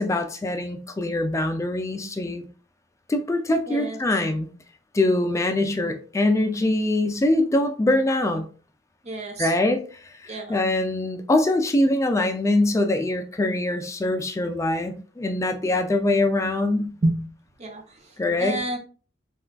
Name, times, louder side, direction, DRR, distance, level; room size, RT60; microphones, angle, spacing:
voice 1, 0.0-2.4 3.1-4.5 4.9-8.5 9.4-9.8 10.2-16.9 18.2-18.6, left 2 dB, 15° left, 0.3 m, -23 dB
voice 2, 3.7-4.0 9.0-9.5 10.3-10.6 17.0-17.2 17.6-18.8, right 1 dB, 35° right, 0.6 m, -29 dB
3.4 x 2.4 x 2.2 m
head